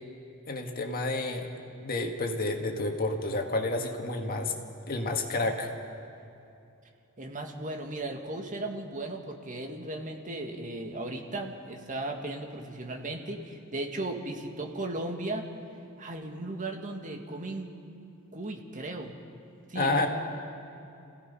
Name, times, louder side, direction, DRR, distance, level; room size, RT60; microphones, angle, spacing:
voice 1, 0.5-1.5 1.8-4.5 4.9-5.7 19.7-20.1, left 2 dB, 45° left, 3 dB, 1.8 m, -30 dB
voice 2, 7.2-15.4 16.0-17.7 18.3-19.1 19.7-20.1, right 2 dB, 40° right, 2 dB, 1.9 m, -36 dB
28.5 x 16.5 x 5.5 m, 2.7 s
head